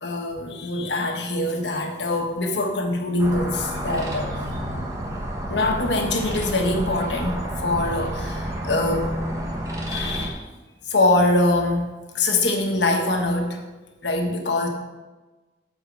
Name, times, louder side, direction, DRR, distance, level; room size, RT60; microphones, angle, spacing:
voice 1, 0.0-4.3 5.5-9.1 9.9-10.4 10.9-11.9 12.1-13.6 14.0-14.7, left 2 dB, 75° left, 2 dB, 1.3 m, -23 dB
sound 1, 3.2-10.3, right 1 dB, 20° right, 1.1 m, -30 dB
8.4 x 4.6 x 6.2 m, 1.2 s
head